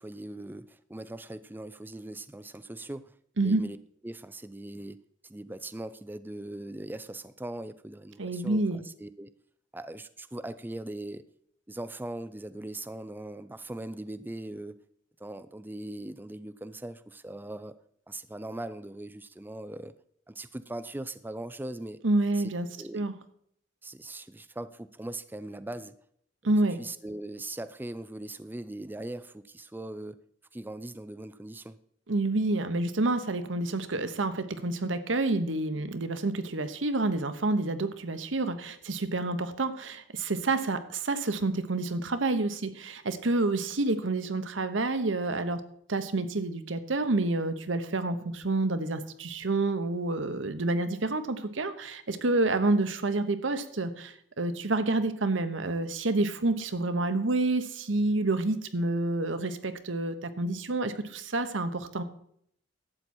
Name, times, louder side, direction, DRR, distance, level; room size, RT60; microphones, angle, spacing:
voice 1, 0.0-3.1 3.4-3.8 4.0-5.0 5.2-9.3 9.7-11.2 11.7-14.8 15.2-17.7 18.1-19.9 20.3-22.0 22.4-22.5 22.8-23.1 23.8-25.9 26.8-30.2 30.5-31.8, right 1 dB, 10° right, 12 dB, 0.4 m, -40 dB
voice 2, 8.2-8.8 22.0-22.7 22.9-23.1 26.4-26.8 32.1-45.6 45.9-62.0, right 2 dB, 90° right, 10 dB, 1.1 m, -28 dB
12.0 x 8.3 x 4.4 m, 0.67 s
head